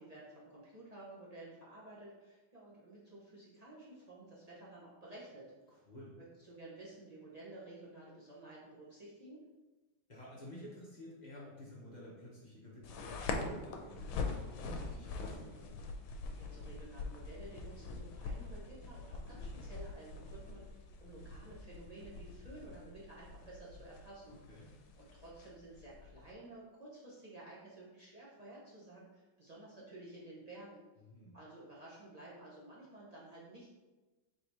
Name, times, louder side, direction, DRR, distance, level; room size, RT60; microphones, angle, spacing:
voice 1, 0.0-5.8 6.4-9.4 16.3-30.8 31.3-33.7, right 2 dB, 55° right, -7 dB, 0.4 m, -53 dB
voice 2, 5.7-6.1 10.1-15.8 24.5-24.7 31.0-31.3, left 1 dB, 50° left, -6 dB, 0.5 m, -51 dB
sound 1, 12.8-26.3, left 3 dB, 80° left, 1.3 m, -44 dB
4.0 x 2.7 x 4.6 m, 1.2 s
omnidirectional pair, 2.1 m